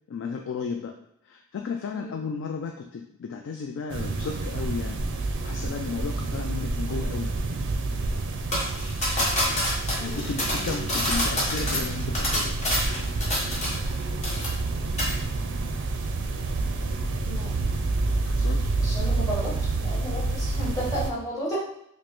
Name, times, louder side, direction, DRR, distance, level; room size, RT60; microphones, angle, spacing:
voice 1, 0.1-0.9 1.2-5.0 5.4-7.3 10.0-12.6 18.2-18.8, left 5 dB, 60° left, 3 dB, 0.3 m, -34 dB
sound 1, 3.9-21.1, right 3 dB, 60° right, 0.4 m, -28 dB
sound 2, 8.5-14.0 14.2-14.7 15.0-15.2, left 1 dB, 35° left, 1.1 m, -27 dB
voice 2, 10.0-10.6 17.2-17.5 18.8-21.6, equal, 15° left, -7 dB, 1.4 m, -33 dB
5.0 x 2.1 x 3.0 m, 0.75 s
head